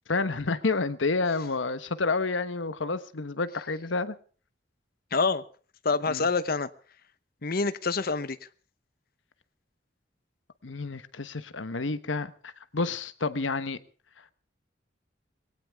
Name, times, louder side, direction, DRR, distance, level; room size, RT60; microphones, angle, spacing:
voice 1, 0.1-4.2 6.1-6.3 10.6-13.8, left 3 dB, 85° left, 1.1 m, -29 dB
voice 2, 5.1-5.4 5.8-6.7 7.4-8.4, left 4 dB, 50° left, 0.9 m, -26 dB
21.0 x 18.0 x 3.5 m
head